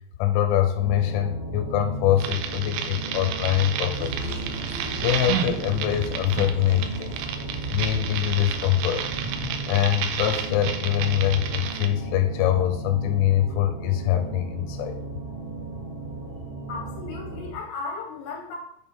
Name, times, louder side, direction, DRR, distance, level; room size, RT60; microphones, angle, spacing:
voice 1, 0.2-4.4 5.0-7.1 7.7-9.1 9.7-15.0, left 12 dB, 90° left, 6 dB, 3.0 m, -24 dB
sound 1, 0.8-17.5, right 3 dB, 60° right, 2.4 m, -35 dB
sound 2, 2.2-11.9, right 9 dB, 85° right, 2.8 m, -31 dB
Toilet flush, 4.0-9.6, right 2 dB, 25° right, 1.7 m, -39 dB
voice 2, 16.7-18.5, left 4 dB, 65° left, 0 dB, 3.0 m, -35 dB
7.2 x 3.5 x 4.3 m, 0.71 s
omnidirectional pair, 5.4 m